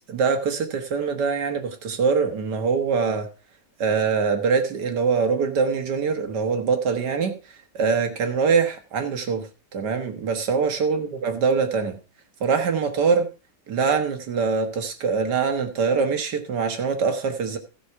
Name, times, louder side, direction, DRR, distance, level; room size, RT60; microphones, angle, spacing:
voice 1, 0.1-3.3 3.8-7.3 7.7-9.5 9.7-12.0 12.4-13.2 13.7-17.6, right 5 dB, 75° right, 6 dB, 2.0 m, -23 dB
15.0 x 6.1 x 4.6 m, 0.33 s
omnidirectional pair, 1.8 m